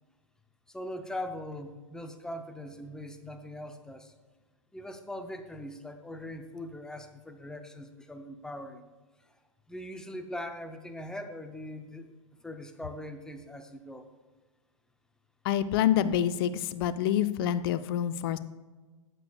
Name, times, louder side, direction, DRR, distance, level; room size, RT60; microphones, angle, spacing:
voice 1, 0.7-4.1 4.7-8.9 9.3-9.4 9.7-12.1 12.4-14.1, left 1 dB, 5° left, 7 dB, 0.6 m, -41 dB
voice 2, 15.4-18.4, left 10 dB, 45° left, 13 dB, 0.5 m, -27 dB
12.5 x 8.4 x 2.3 m, 1.3 s
figure-of-eight pair, 105°, 17 cm